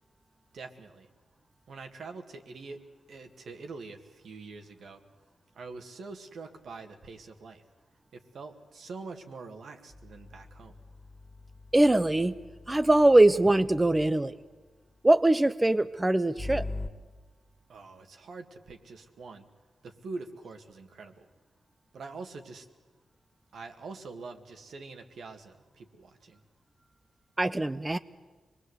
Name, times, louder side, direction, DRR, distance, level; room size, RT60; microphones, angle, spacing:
voice 1, 0.5-1.1 1.7-2.8 3.1-5.0 5.5-7.6 8.1-10.7 17.7-19.5 19.8-21.3 21.9-22.7 23.5-26.4, right 3 dB, 80° right, 5 dB, 2.1 m, -44 dB
sound 1, 9.9-14.3 16.4-16.9, left 2 dB, 20° left, 2.2 m, -42 dB
voice 2, 11.7-12.4 12.7-14.4 15.0-16.7 27.4-28.0, right 1 dB, 15° right, 11 dB, 0.7 m, -22 dB
25.5 x 20.5 x 8.2 m, 1.3 s
cardioid pair, 80°, 0 cm